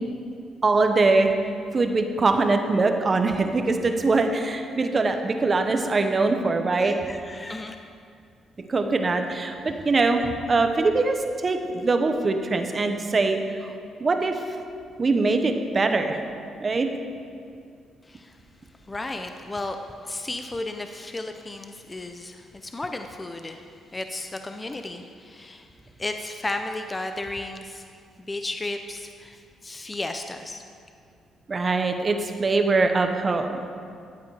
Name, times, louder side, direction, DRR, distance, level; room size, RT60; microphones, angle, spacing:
voice 1, 0.6-1.3 1.7-7.0 8.6-13.7 14.0-14.4 15.0-16.2 16.6-16.9 31.5-33.5, right 3 dB, 35° right, 6 dB, 1.1 m, -22 dB
voice 2, 6.8-7.8 9.6-9.8 18.1-18.4 18.9-19.8 20.0-23.7 23.9-25.7 26.0-27.8 28.2-30.6, left 2 dB, 20° left, 6 dB, 0.6 m, -34 dB
13.5 x 8.2 x 4.9 m, 2.3 s
cardioid pair, 90°, 0 cm